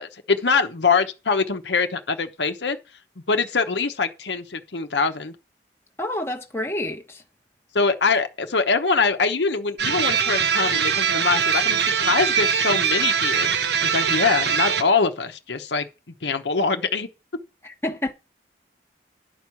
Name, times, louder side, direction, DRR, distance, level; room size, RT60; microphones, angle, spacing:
voice 1, 0.0-2.8 3.3-5.3 7.7-15.9 16.2-17.1, left 4 dB, 80° left, 1.0 m, -23 dB
voice 2, 6.0-7.2 17.6-18.1, left 1 dB, 15° left, 1.0 m, -28 dB
sound 1, 9.8-14.8, right 7 dB, 75° right, 0.9 m, -22 dB
11.5 x 4.7 x 7.2 m
head